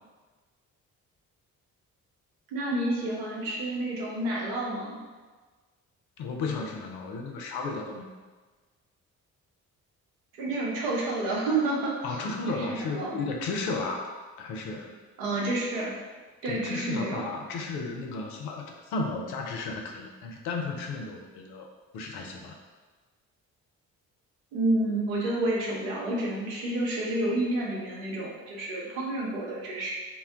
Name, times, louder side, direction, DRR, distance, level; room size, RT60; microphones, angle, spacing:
voice 1, 2.5-5.0 10.4-12.2 12.5-13.2 15.2-15.9 16.4-17.3 24.5-29.9, right 2 dB, 75° right, -3 dB, 0.8 m, -29 dB
voice 2, 6.2-8.1 12.0-14.1 14.4-14.9 16.4-21.7 21.9-22.6, left 3 dB, 60° left, 2 dB, 0.5 m, -34 dB
2.1 x 2.1 x 3.6 m, 1.3 s
hypercardioid pair, 40°, 43 cm